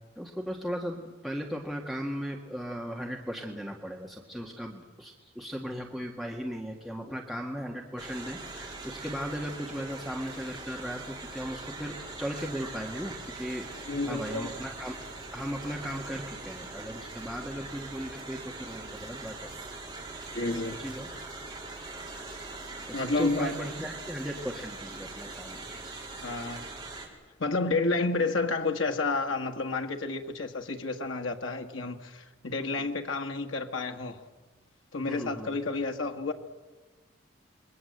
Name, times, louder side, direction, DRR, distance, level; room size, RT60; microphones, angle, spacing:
voice 1, 0.2-15.0 15.3-19.5 20.4-21.1 22.9-25.7 32.6-32.9 35.1-35.6, equal, ahead, 1.8 m, -37 dB
sound 1, 8.0-27.1, right 3 dB, 20° right, 5.0 m, -42 dB
voice 2, 13.9-14.5 20.3-20.8 22.9-23.6 26.2-26.7 27.4-34.2 34.9-36.3, left 3 dB, 85° left, 1.7 m, -30 dB
27.5 x 22.0 x 8.0 m
head